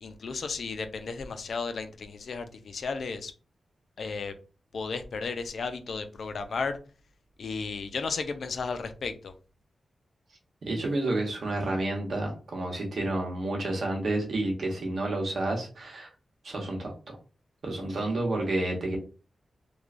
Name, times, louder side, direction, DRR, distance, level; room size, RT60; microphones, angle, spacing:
voice 1, 0.0-3.3 4.0-4.3 4.7-6.8 7.4-9.3, left 4 dB, 70° left, 8 dB, 0.4 m, -34 dB
voice 2, 10.6-16.1 16.4-17.2 17.6-19.0, right 2 dB, 70° right, 0 dB, 0.9 m, -30 dB
3.1 x 2.2 x 2.4 m, 0.35 s
wide cardioid pair, 110°, 0 cm